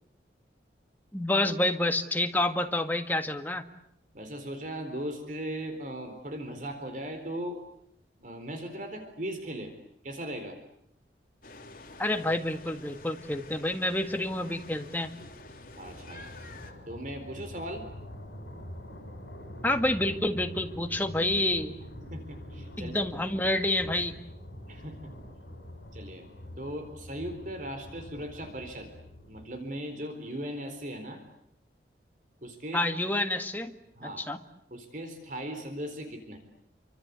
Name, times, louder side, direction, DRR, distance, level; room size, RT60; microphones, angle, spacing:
voice 1, 1.1-3.6 12.0-15.1 19.6-21.8 22.8-24.1 32.7-33.8 34.0-34.4, left 1 dB, 10° left, 5 dB, 1.8 m, -28 dB
voice 2, 4.1-7.6 8.2-9.7 10.0-10.6 15.8-16.3 16.9-17.9 22.1-23.0 24.7-25.1 25.9-26.3 26.6-28.9 29.3-31.2 32.4-32.9 34.0-34.3 34.7-36.4, right 1 dB, 45° right, 6 dB, 4.1 m, -38 dB
sound 1, 11.4-16.7, left 2 dB, 50° left, 3.4 m, -48 dB
sound 2, 13.8-29.8, equal, 65° left, 6.9 m, -45 dB
28.5 x 25.5 x 8.3 m, 0.73 s
head